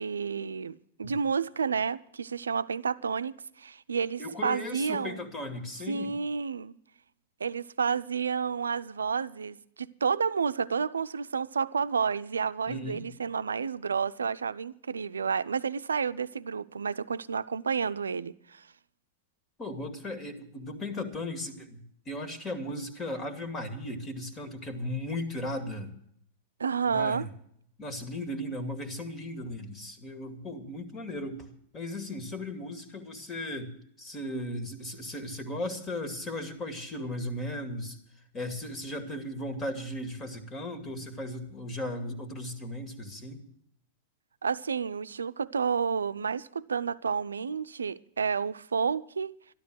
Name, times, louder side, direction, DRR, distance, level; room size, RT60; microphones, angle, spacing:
voice 1, 0.0-5.3 5.9-6.7 7.4-18.7 26.6-27.3 44.4-49.3, right 6 dB, 85° right, 0.5 m, -30 dB
voice 2, 4.2-6.1 12.7-13.0 19.6-25.9 26.9-27.3 27.8-33.7 34.0-38.0 38.3-43.4, left 1 dB, 25° left, 2.3 m, -36 dB
13.0 x 12.0 x 6.3 m
hypercardioid pair, 100°, 0 cm